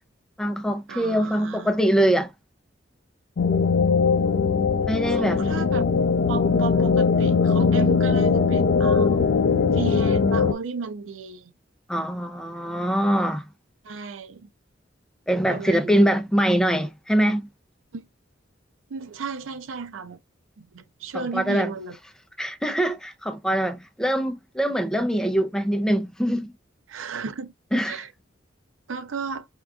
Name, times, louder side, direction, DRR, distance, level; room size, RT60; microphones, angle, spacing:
voice 1, 0.4-2.3 4.9-5.4 11.9-13.5 15.3-17.5 21.1-21.7 22.4-26.5 27.7-28.1, right 1 dB, 5° left, 0.5 m, -23 dB
voice 2, 0.9-1.7 5.1-5.8 6.3-9.2 9.7-11.5 13.8-14.5 15.5-16.1 17.9-18.1 18.9-20.2 20.6-22.0 26.9-27.5 27.8-28.1 28.9-29.5, right 5 dB, 80° right, 0.5 m, -34 dB
sound 1, 3.4-10.5, left 5 dB, 55° left, 0.4 m, -20 dB
4.6 x 2.4 x 2.4 m
head